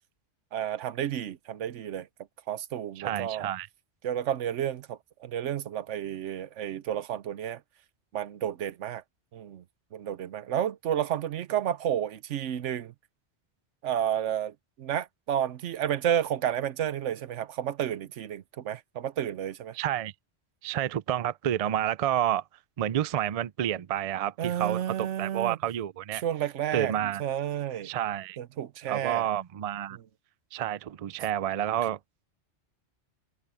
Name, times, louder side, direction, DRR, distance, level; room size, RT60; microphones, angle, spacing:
voice 1, 0.5-2.1 2.5-3.5 4.0-7.6 8.1-9.0 9.3-9.6 9.9-12.9 13.8-19.8 24.4-25.6 26.2-26.9 27.2-27.9 28.4-29.3, right 10 dB, 90° right, 1.1 m, -31 dB
voice 2, 3.0-3.7 19.7-20.1 20.6-22.4 22.8-26.2 26.7-27.2 27.8-28.4 28.9-30.0 30.5-32.0, right 11 dB, 65° right, 0.3 m, -29 dB
omnidirectional pair, 1.2 m